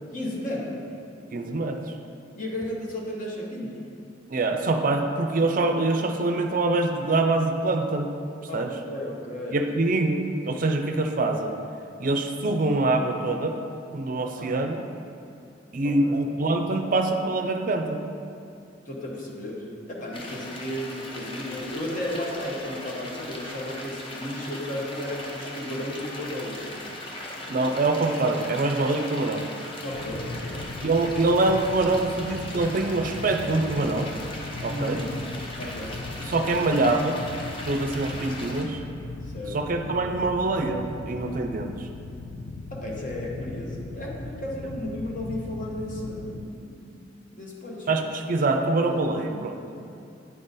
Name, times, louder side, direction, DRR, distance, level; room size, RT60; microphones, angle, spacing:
voice 1, 0.1-0.9 2.3-3.8 8.5-9.6 14.2-14.6 15.8-16.2 18.8-27.0 27.6-27.8 29.8-31.0 34.7-35.1 35.6-36.0 39.3-39.7 42.7-47.9 48.8-49.0 49.7-49.9, left 1 dB, 45° left, -2 dB, 1.0 m, -34 dB
voice 2, 1.3-1.8 4.3-8.1 8.5-8.7 9.5-11.6 12.0-13.6 13.9-14.9 15.7-18.0 27.5-29.5 30.8-34.1 34.6-35.0 36.2-37.2 37.7-38.8 39.5-41.7 47.9-49.6, right 2 dB, 45° right, 5 dB, 0.4 m, -24 dB
sound 1, 20.1-38.6, left 1 dB, 30° left, 0.7 m, -39 dB
sound 2, 29.9-46.4, left 3 dB, 75° left, 0.4 m, -38 dB
9.2 x 3.8 x 4.0 m, 2.6 s
head